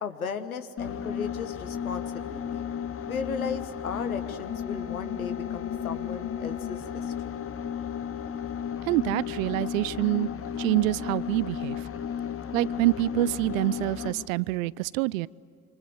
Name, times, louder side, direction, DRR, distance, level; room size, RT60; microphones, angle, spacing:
voice 1, 0.0-2.7 3.0-7.1, left 6 dB, 85° left, 10 dB, 1.3 m, -36 dB
sound 1, 0.8-14.3, left 8 dB, 30° left, 1.2 m, -34 dB
voice 2, 8.9-10.3 10.6-11.9 12.5-15.3, right 19 dB, 70° right, 23 dB, 0.6 m, -26 dB
28.0 x 25.5 x 8.0 m, 2.6 s
figure-of-eight pair, 55°, 42 cm